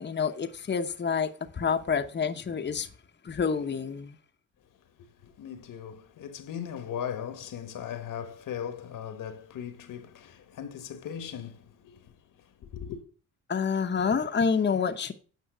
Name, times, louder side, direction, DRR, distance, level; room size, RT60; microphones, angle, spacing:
voice 1, 0.0-2.9 3.2-4.2 13.5-15.1, left 6 dB, 30° left, 0.9 m, -28 dB
voice 2, 5.0-12.2 12.4-13.0, left 8 dB, 75° left, 1.4 m, -38 dB
9.4 x 5.4 x 6.1 m
cardioid pair, 85°, 33 cm